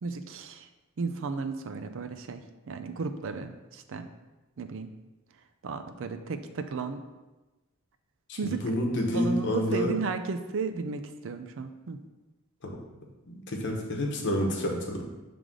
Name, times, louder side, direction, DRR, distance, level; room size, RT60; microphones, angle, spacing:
voice 1, 0.0-0.7 1.0-4.1 4.6-4.9 5.6-7.0 8.4-8.6 9.1-12.0, right 4 dB, 65° right, 8 dB, 0.5 m, -34 dB
voice 2, 8.3-9.9 12.6-12.8 13.3-15.0, equal, 55° left, 0 dB, 1.0 m, -29 dB
7.5 x 3.4 x 3.7 m, 1.1 s
head